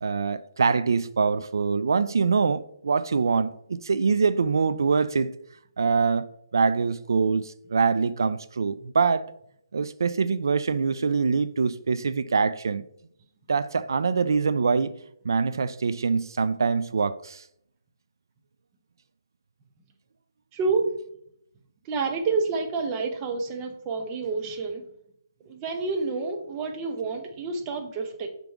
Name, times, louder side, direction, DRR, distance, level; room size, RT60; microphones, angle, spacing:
voice 1, 0.0-5.3 5.8-9.3 9.7-12.8 13.5-15.0 15.2-17.4, right 5 dB, 65° right, 0.4 m, -24 dB
voice 2, 20.5-20.8 21.8-24.8 25.4-28.3, right 4 dB, 20° right, 0.9 m, -28 dB
6.0 x 5.3 x 3.4 m
figure-of-eight pair, 150°, 2 cm